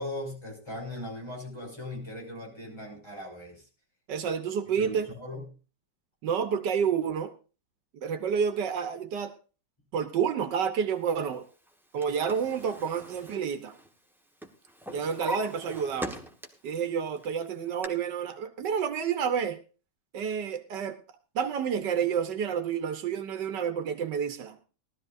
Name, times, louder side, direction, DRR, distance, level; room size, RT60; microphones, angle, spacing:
voice 1, 0.0-3.7 4.2-4.3 4.8-5.5 14.9-15.1, left 1 dB, 15° left, -2 dB, 6.1 m, -39 dB
voice 2, 4.1-5.1 6.2-7.3 8.0-9.3 9.9-11.4 11.9-13.7 14.9-16.2 16.6-19.6 20.1-21.0 21.3-24.6, right 7 dB, 80° right, 8 dB, 1.6 m, -29 dB
Drawer open or close, 11.7-14.1 14.4-16.7 17.2-17.9, equal, ahead, 1.1 m, -41 dB
19.0 x 13.0 x 2.6 m, 0.35 s
omnidirectional pair, 1.8 m